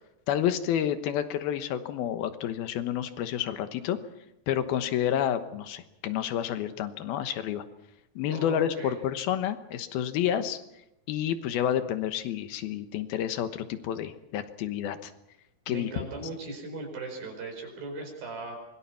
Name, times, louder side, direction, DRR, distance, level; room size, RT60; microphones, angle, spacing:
voice 1, 0.3-4.0 4.5-7.6 8.2-10.6 11.1-15.1 15.7-16.1, left 10 dB, 75° left, 10 dB, 3.0 m, -29 dB
voice 2, 8.3-9.0 15.7-18.6, right 3 dB, 65° right, 4 dB, 6.6 m, -38 dB
26.0 x 22.0 x 5.9 m, 0.85 s
omnidirectional pair, 4.6 m